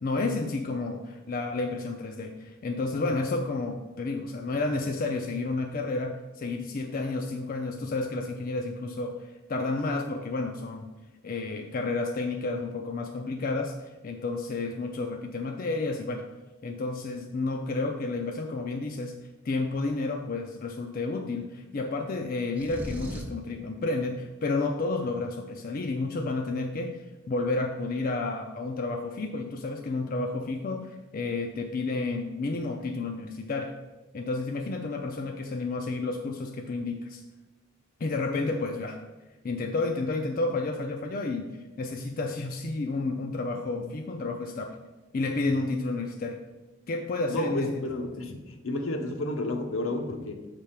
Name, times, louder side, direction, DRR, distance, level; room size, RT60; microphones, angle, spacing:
voice 1, 0.0-10.9 11.2-16.2 16.6-19.1 19.4-33.7 34.1-37.2 38.0-39.0 39.4-44.8 45.1-46.4 46.9-47.9, left 3 dB, 40° left, 3 dB, 0.4 m, -31 dB
sound 1, 22.6-23.4, equal, 10° right, 0.6 m, -37 dB
voice 2, 47.3-50.5, left 2 dB, 70° left, 5 dB, 0.8 m, -31 dB
7.5 x 3.5 x 5.7 m, 1.1 s
head